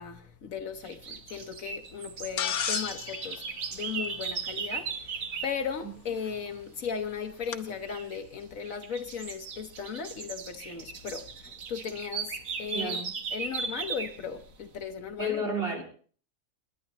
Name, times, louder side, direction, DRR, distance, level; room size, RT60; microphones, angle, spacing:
voice 1, 0.0-13.0 13.3-15.4, left 6 dB, 70° left, 1.4 m, -37 dB
sound 1, 0.9-5.6 7.8-8.2 8.6-14.2, right 5 dB, 70° right, 1.5 m, -37 dB
sound 2, 2.4-4.7 6.3-6.4 7.5-7.6, left 8 dB, 90° left, 1.4 m, -34 dB
voice 2, 12.7-13.1 15.2-15.8, equal, 40° right, 3.9 m, -31 dB
28.5 x 11.0 x 2.9 m
omnidirectional pair, 1.5 m